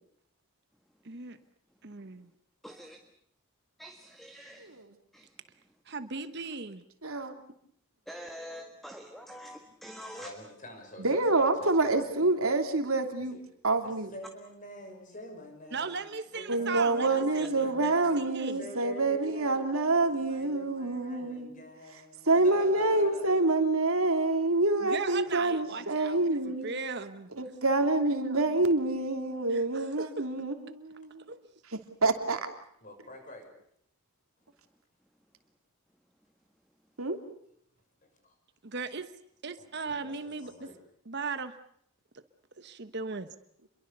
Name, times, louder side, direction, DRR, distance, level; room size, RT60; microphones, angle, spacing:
voice 1, 1.0-1.4 1.8-2.3 5.9-6.8 15.7-18.6 24.8-26.2 26.6-27.3 29.5-30.2 31.3-31.4 38.6-39.1 39.4-40.7 41.0-41.5 42.6-43.3, right 4 dB, 50° right, 11 dB, 1.1 m, -38 dB
voice 2, 2.6-3.0 3.8-4.6 5.1-5.2 8.1-10.3, equal, ahead, 4 dB, 1.7 m, -45 dB
voice 3, 4.6-4.9 7.0-7.4 11.0-13.4 13.6-14.1 16.5-21.5 22.3-26.7 27.4-31.3 31.7-32.4 37.0-37.2, right 2 dB, 80° right, 6 dB, 3.1 m, -27 dB
voice 4, 10.1-12.4 13.3-13.4 13.8-18.3 18.6-23.3 25.7-25.9 32.8-33.5 38.2-38.3 39.6-40.8, left 1 dB, 35° left, 5 dB, 6.5 m, -47 dB
29.0 x 23.0 x 6.8 m, 0.68 s
head